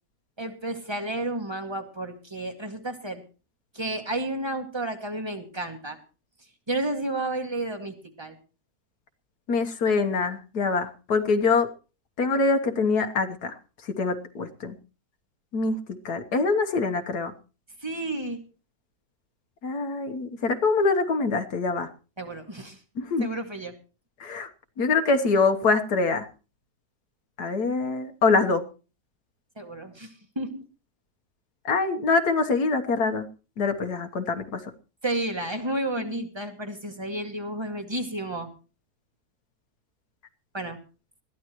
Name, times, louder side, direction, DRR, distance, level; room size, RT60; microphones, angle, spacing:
voice 1, 0.4-3.2 3.7-6.0 6.7-8.4 17.8-18.4 22.2-22.8 23.2-23.7 29.6-30.6 35.0-38.5 40.5-40.8, right 1 dB, 15° right, 5 dB, 2.0 m, -31 dB
voice 2, 9.5-11.7 12.2-13.5 14.0-14.8 15.5-15.8 16.1-17.3 19.6-21.9 23.0-23.3 24.2-24.5 24.8-26.3 27.4-28.6 31.7-33.3 33.6-34.6, left 4 dB, 75° left, 6 dB, 1.7 m, -24 dB
21.0 x 14.5 x 3.0 m, 0.34 s
omnidirectional pair, 1.7 m